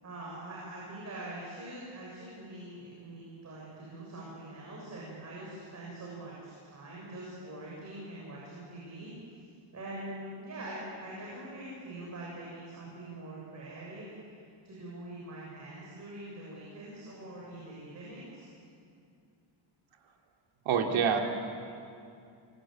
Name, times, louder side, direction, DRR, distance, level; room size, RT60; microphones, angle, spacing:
voice 1, 0.0-9.1 9.7-14.1 14.6-18.5, right 1 dB, 35° right, -5 dB, 7.2 m, -44 dB
voice 2, 20.6-21.2, right 7 dB, 75° right, 2 dB, 3.2 m, -26 dB
27.0 x 23.0 x 9.1 m, 2.4 s
cardioid pair, 165°, 48 cm